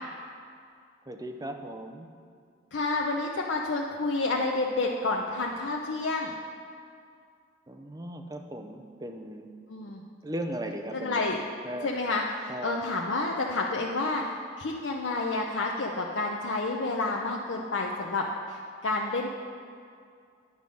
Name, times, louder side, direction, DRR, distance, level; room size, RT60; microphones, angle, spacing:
voice 1, 1.1-2.1 7.7-9.5 10.2-11.3 11.6-11.9 12.5-12.8, right 1 dB, 20° right, 4 dB, 0.5 m, -37 dB
voice 2, 2.7-6.3 9.7-10.0 10.9-11.4 11.8-19.3, left 3 dB, 80° left, -1 dB, 0.6 m, -29 dB
9.6 x 6.3 x 5.3 m, 2.3 s
head